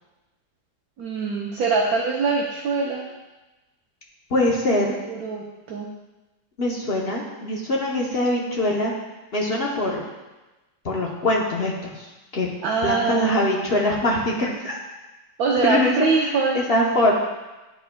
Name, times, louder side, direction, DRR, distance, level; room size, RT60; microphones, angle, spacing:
voice 1, 1.0-3.1 5.1-5.9 12.6-13.5 15.4-16.6, right 4 dB, 65° right, -2 dB, 1.1 m, -23 dB
voice 2, 4.3-5.0 6.6-8.9 9.3-10.0 10.8-12.1 12.3-12.5 12.8-14.8 15.6-15.9 16.2-17.1, left 1 dB, 45° left, -3 dB, 0.8 m, -23 dB
10.0 x 4.7 x 2.2 m, 1.1 s
omnidirectional pair, 1.9 m